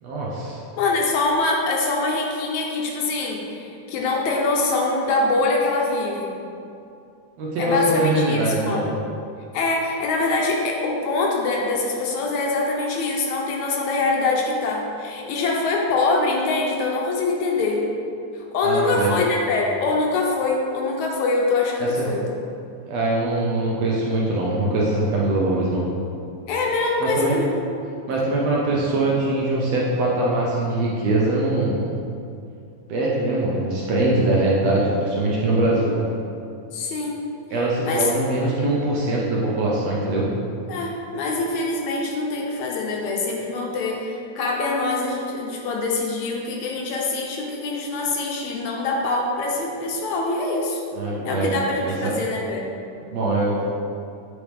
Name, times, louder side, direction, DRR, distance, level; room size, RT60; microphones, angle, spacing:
voice 1, 0.0-0.6 7.4-8.9 18.6-19.2 21.8-22.2 22.9-25.8 27.0-27.4 28.1-31.9 32.9-35.9 37.5-40.2 50.9-51.5 51.8-52.1 53.1-53.6, right 2 dB, 70° right, -5 dB, 1.7 m, -22 dB
voice 2, 0.8-6.4 7.6-8.9 9.5-17.8 18.3-22.2 26.5-27.5 36.7-37.2 37.5-38.1 40.7-50.8 51.3-52.7, left 3 dB, 75° left, -1 dB, 1.9 m, -24 dB
8.3 x 4.7 x 3.4 m, 2.6 s
omnidirectional pair, 3.6 m